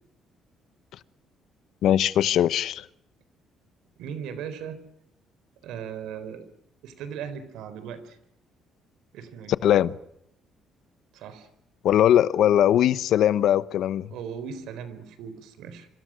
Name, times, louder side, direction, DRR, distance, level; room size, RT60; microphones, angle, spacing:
voice 1, 1.8-2.8 9.6-9.9 11.8-14.1, left 11 dB, 65° left, 1.0 m, -20 dB
voice 2, 4.0-4.8 5.6-6.5 6.8-8.2 9.1-9.6 11.1-11.5 14.1-15.9, right 7 dB, 85° right, 4.3 m, -38 dB
26.5 x 25.5 x 6.4 m
cardioid pair, 140°, 0 cm